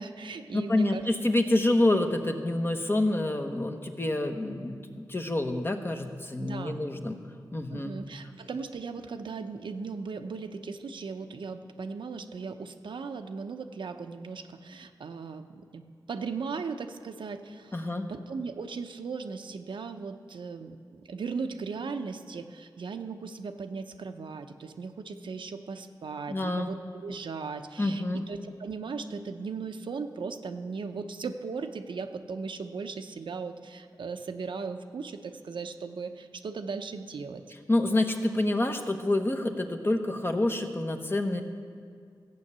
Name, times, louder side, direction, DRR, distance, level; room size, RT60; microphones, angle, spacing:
voice 1, 0.0-1.1 6.4-6.8 7.7-15.5 15.7-37.4, right 4 dB, 85° right, 6 dB, 0.8 m, -37 dB
voice 2, 0.5-7.1 7.5-7.9 17.7-18.1 26.3-26.7 27.8-28.2 37.7-41.4, left 1 dB, 30° left, 5 dB, 1.2 m, -27 dB
15.0 x 8.5 x 6.8 m, 2.2 s
wide cardioid pair, 75°, 8 cm